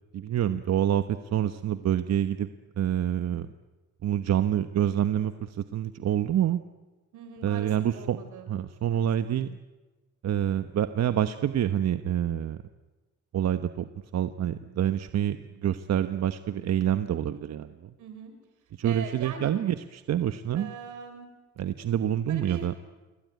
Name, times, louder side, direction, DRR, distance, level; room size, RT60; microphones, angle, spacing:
voice 1, 0.1-2.5 2.8-3.5 4.0-6.6 7.4-8.2 8.5-9.6 10.2-12.6 13.3-17.7 18.8-20.7 21.6-22.7, right 10 dB, 60° right, 9 dB, 1.2 m, -27 dB
voice 2, 7.1-8.5 8.9-9.1 18.0-18.3 18.8-19.5 20.5-21.3 22.3-22.7, right 6 dB, 85° right, 7 dB, 6.0 m, -41 dB
28.0 x 22.5 x 9.4 m, 1.2 s
cardioid pair, 90°, 30 cm